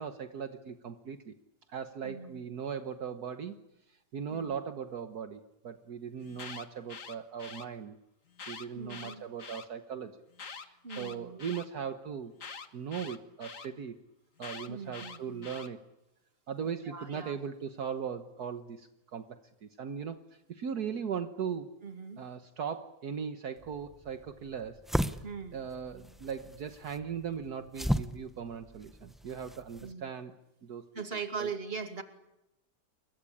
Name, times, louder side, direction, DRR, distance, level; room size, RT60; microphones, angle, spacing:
voice 1, 0.0-1.3 1.7-3.6 3.9-8.0 8.5-10.2 10.5-12.3 12.7-14.0 14.4-15.8 16.5-21.7 22.2-25.2 25.5-30.3 30.6-31.5, right 7 dB, 65° right, 8 dB, 1.7 m, -39 dB
voice 2, 2.0-2.5 4.3-4.6 8.7-9.3 10.8-11.4 14.7-15.5 16.8-17.3 21.8-22.2 25.2-25.6 29.8-30.1 30.9-32.0, right 5 dB, 35° right, 7 dB, 2.6 m, -40 dB
Alarm, 6.2-7.7 8.3-9.7 10.3-11.7 12.4-13.7 14.4-15.7, left 5 dB, 50° left, 1.9 m, -45 dB
sound 1, 23.6-29.9, equal, ahead, 0.5 m, -36 dB
29.0 x 23.0 x 8.7 m, 0.92 s
omnidirectional pair, 1.9 m